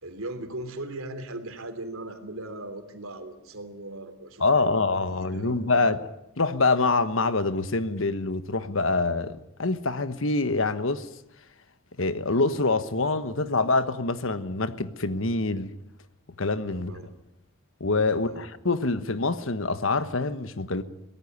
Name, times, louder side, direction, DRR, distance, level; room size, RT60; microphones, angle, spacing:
voice 1, 0.0-6.0 16.7-17.1 18.1-18.5, right 1 dB, 90° right, 3.3 m, -39 dB
voice 2, 4.4-6.0 6.4-11.1 12.0-15.7 16.4-16.9 17.8-20.8, left 3 dB, 65° left, 1.3 m, -25 dB
23.0 x 17.5 x 9.6 m
head